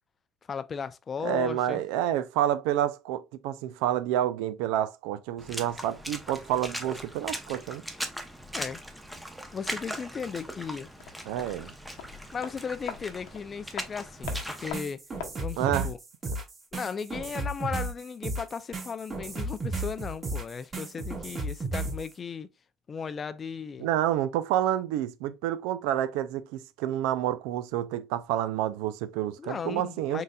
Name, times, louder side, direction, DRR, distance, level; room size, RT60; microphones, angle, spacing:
voice 1, 0.5-1.8 8.5-8.8 9.5-10.9 12.3-15.0 15.4-16.0 16.7-22.5 22.9-23.9 29.4-30.2, left 6 dB, 30° left, 0.4 m, -36 dB
voice 2, 1.2-7.8 11.3-11.7 15.6-15.9 16.3-16.4 23.8-30.2, right 12 dB, 85° right, 0.4 m, -29 dB
Water / Splash splatter, 5.4-14.7, equal, 5° right, 0.7 m, -39 dB
sound 1, 11.0-16.0 16.2-16.3, left 9 dB, 85° left, 0.9 m, -43 dB
sound 2, 14.2-22.1, right 2 dB, 30° right, 2.2 m, -34 dB
4.0 x 3.8 x 2.3 m
cardioid pair, 115°, 0 cm